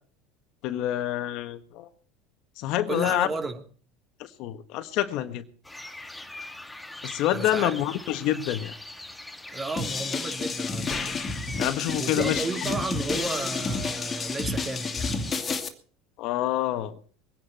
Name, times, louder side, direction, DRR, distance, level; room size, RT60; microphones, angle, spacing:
voice 1, 0.6-1.9 2.6-3.3 4.4-5.4 7.0-8.7 11.6-12.4 16.2-17.0, left 12 dB, 60° left, 1.6 m, -27 dB
voice 2, 2.9-3.6 7.3-7.8 9.5-11.2 11.9-15.1, right 3 dB, 25° right, 3.0 m, -33 dB
sound 1, 5.6-15.6, left 1 dB, 5° left, 1.6 m, -42 dB
sound 2, 9.8-15.7, left 4 dB, 25° left, 2.5 m, -30 dB
23.5 x 10.5 x 4.4 m
hypercardioid pair, 95°, 0 cm